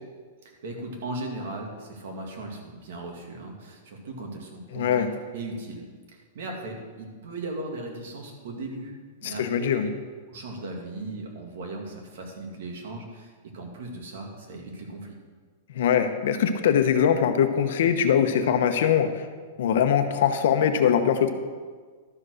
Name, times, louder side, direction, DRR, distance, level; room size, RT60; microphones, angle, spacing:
voice 1, 0.4-5.1 5.3-5.8 6.1-8.9 9.2-9.9 10.3-15.2, right 2 dB, 65° right, 1 dB, 2.2 m, -37 dB
voice 2, 4.7-5.1 9.2-9.9 15.7-19.3 19.6-21.3, left 8 dB, 65° left, 8 dB, 0.9 m, -22 dB
12.0 x 4.9 x 6.4 m, 1.5 s
supercardioid pair, 160°, 0 cm